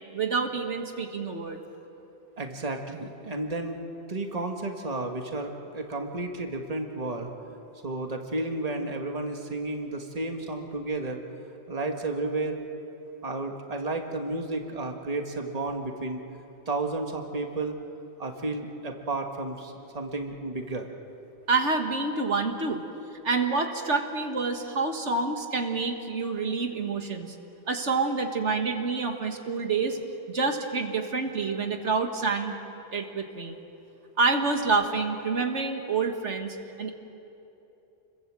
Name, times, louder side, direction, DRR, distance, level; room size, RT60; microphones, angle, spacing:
voice 1, 0.1-1.6 21.5-22.8 23.2-27.4 27.7-30.0 30.3-32.5 32.9-33.6 34.2-36.9, right 4 dB, 80° right, 4 dB, 2.0 m, -27 dB
voice 2, 2.4-3.8 4.1-7.3 7.8-11.2 11.7-12.6 13.2-16.2 16.7-17.8 18.2-20.9, right 2 dB, 35° right, 3 dB, 1.8 m, -32 dB
29.5 x 22.5 x 7.7 m, 2.9 s
omnidirectional pair, 1.2 m